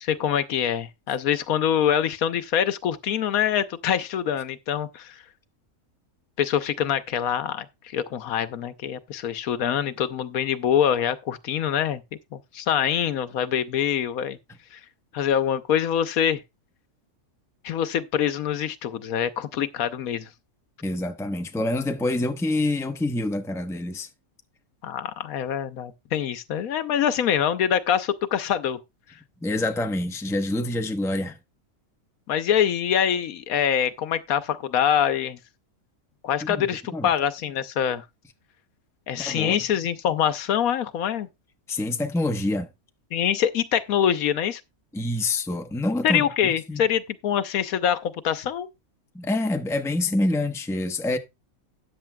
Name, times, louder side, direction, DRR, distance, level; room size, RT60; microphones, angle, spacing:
voice 1, 0.0-5.1 6.4-12.0 12.3-14.4 14.7-14.8 15.1-16.4 17.6-20.3 24.8-28.8 32.3-35.4 36.2-38.0 39.1-41.3 43.1-44.6 46.0-48.7, left 9 dB, 75° left, 1.2 m, -25 dB
voice 2, 20.8-24.1 29.4-31.4 36.4-37.1 39.2-39.6 41.7-42.7 44.9-46.8 49.1-51.2, left 2 dB, 5° left, 0.6 m, -26 dB
13.5 x 9.6 x 2.3 m
omnidirectional pair, 1.5 m